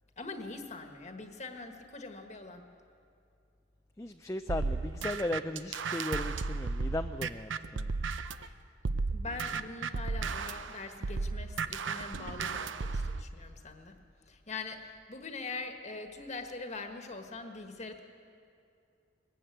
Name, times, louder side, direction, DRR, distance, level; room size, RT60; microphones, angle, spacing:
voice 1, 0.2-2.7 8.4-8.5 9.1-14.0 14.3-18.0, left 3 dB, 40° left, 5 dB, 1.4 m, -43 dB
voice 2, 4.0-7.9, left 1 dB, 15° left, 6 dB, 0.4 m, -36 dB
sound 1, 4.5-8.5 8.8-13.2, right 4 dB, 85° right, 0.7 m, -34 dB
20.5 x 15.5 x 9.2 m, 2.5 s
head